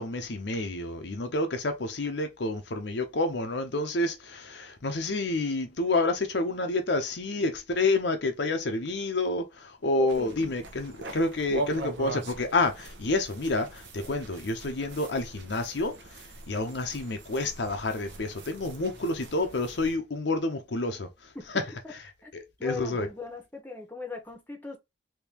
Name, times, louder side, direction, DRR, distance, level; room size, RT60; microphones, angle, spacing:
voice 1, 0.0-16.0 16.5-21.1 22.3-23.1, left 2 dB, 70° left, 0.7 m, -29 dB
voice 2, 10.0-10.5 21.3-21.5 21.8-21.9 22.2-22.3 22.6-24.8, left 4 dB, 10° left, 0.9 m, -39 dB
sound 1, 10.1-20.0, right 1 dB, 80° right, 0.9 m, -41 dB
3.6 x 2.9 x 2.9 m
head